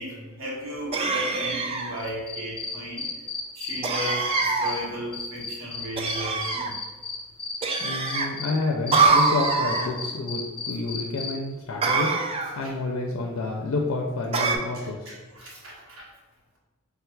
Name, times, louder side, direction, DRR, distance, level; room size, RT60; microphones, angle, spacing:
voice 1, 0.0-3.1 3.5-6.8 12.6-12.7 15.1-16.1, equal, 75° right, -4 dB, 1.2 m, -35 dB
sound 1, 0.9-2.0 3.8-4.8 6.0-6.7 7.6-8.3 8.9-9.9 11.8-12.6 14.3-14.6, right 4 dB, 25° right, 0.3 m, -24 dB
Cricket, 2.0-4.8 5.1-8.5 8.9-11.3, left 5 dB, 25° left, 0.5 m, -33 dB
voice 2, 7.8-15.1, left 3 dB, 75° left, 1 dB, 0.4 m, -29 dB
3.5 x 2.3 x 4.4 m, 1.3 s
head